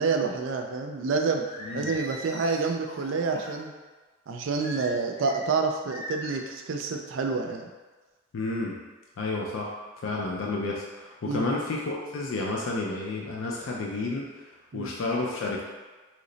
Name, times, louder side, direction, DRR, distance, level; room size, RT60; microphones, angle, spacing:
voice 1, 0.0-1.4 1.7-3.7 4.3-7.6 11.3-11.5 14.7-14.9, right 4 dB, 65° right, 4 dB, 0.4 m, -28 dB
Singing, 1.4-3.6 4.6-5.4 5.9-6.4, left 1 dB, 35° left, 0.6 m, -40 dB
voice 2, 8.3-8.7 9.2-9.7 10.0-14.3 14.7-15.6, left 2 dB, 75° left, -2 dB, 0.4 m, -30 dB
3.1 x 2.0 x 3.8 m, 1.3 s
head